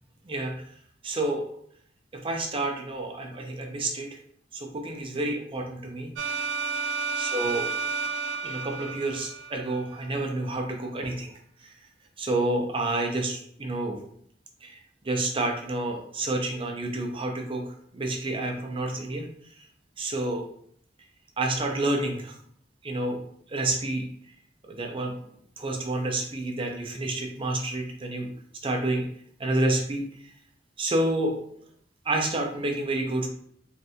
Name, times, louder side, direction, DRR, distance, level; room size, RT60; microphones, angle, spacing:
voice 1, 0.2-0.7 1.0-1.4 2.1-4.2 4.5-6.1 7.1-7.7 8.4-11.3 11.6-11.7 12.2-14.0 14.6-19.3 20.0-20.4 21.4-22.4 22.8-23.2 23.5-24.1 24.6-25.1 25.6-28.3 28.6-29.0 29.4-30.3 30.8-31.4 32.0-33.3, right 2 dB, 30° right, 2 dB, 0.6 m, -29 dB
sound 1, 6.2-10.1, right 5 dB, 85° right, 0.3 m, -31 dB
3.3 x 2.6 x 2.7 m, 0.64 s
head